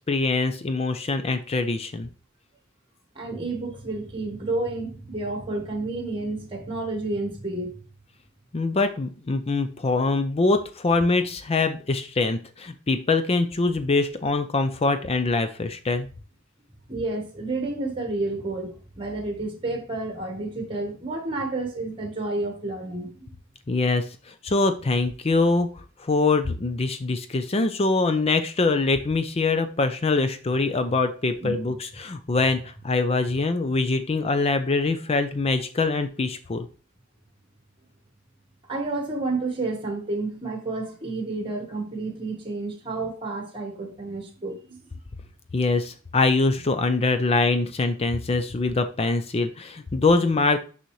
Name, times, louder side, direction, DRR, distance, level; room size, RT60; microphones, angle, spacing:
voice 1, 0.1-2.1 8.5-16.1 23.7-25.7 26.0-36.7 45.5-50.6, left 3 dB, 30° left, 0.5 m, -23 dB
voice 2, 3.1-7.8 16.9-23.1 31.4-31.7 38.7-44.8, right 2 dB, 25° right, 1.4 m, -30 dB
6.4 x 5.6 x 3.1 m
head